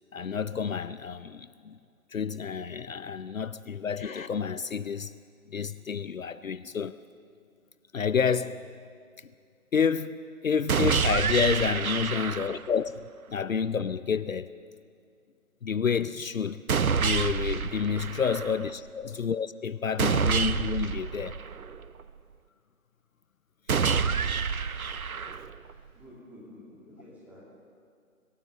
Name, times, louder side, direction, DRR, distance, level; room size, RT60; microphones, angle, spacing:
voice 1, 0.1-1.8 2.1-5.1 5.5-7.0 7.9-8.6 9.7-13.0 13.3-14.5 15.6-16.6 17.0-21.4, left 6 dB, 65° left, 14 dB, 0.7 m, -29 dB
sound 1, 10.7-12.7 16.7-18.7 20.0-22.0 23.7-25.7, right 6 dB, 75° right, 0.8 m, -28 dB
voice 2, 17.7-18.0 18.4-18.5 23.9-24.1 26.0-27.4, equal, 5° right, -5 dB, 2.0 m, -50 dB
25.0 x 17.5 x 6.5 m, 2.3 s
figure-of-eight pair, 155°, 43 cm